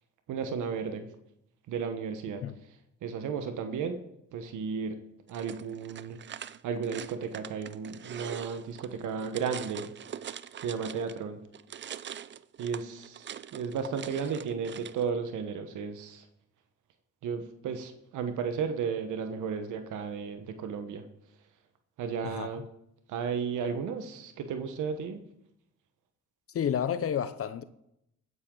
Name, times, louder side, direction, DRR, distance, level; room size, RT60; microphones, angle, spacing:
voice 1, 0.3-1.1 1.7-2.8 3.0-4.0 4.3-5.0 5.3-6.2 6.6-9.9 10.6-11.4 12.6-16.3 17.2-21.1 22.0-22.6 23.1-25.2, right 6 dB, 80° right, 1.2 m, -34 dB
sound 1, 5.3-11.2 11.5-15.1, right 9 dB, 40° right, 0.5 m, -43 dB
voice 2, 26.5-27.6, left 8 dB, 50° left, 0.7 m, -30 dB
15.5 x 9.7 x 3.9 m
cardioid pair, 90°, 30 cm